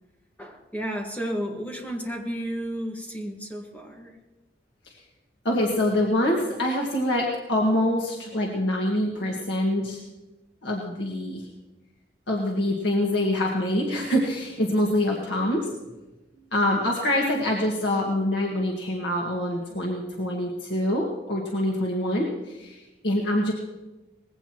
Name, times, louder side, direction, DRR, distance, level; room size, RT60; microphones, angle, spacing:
voice 1, 0.4-4.1, equal, 10° left, 1 dB, 1.7 m, -32 dB
voice 2, 5.5-10.0 10.6-11.4 12.3-15.7 16.5-23.5, left 1 dB, 80° left, -2 dB, 1.8 m, -25 dB
20.0 x 16.5 x 3.1 m, 1.1 s
head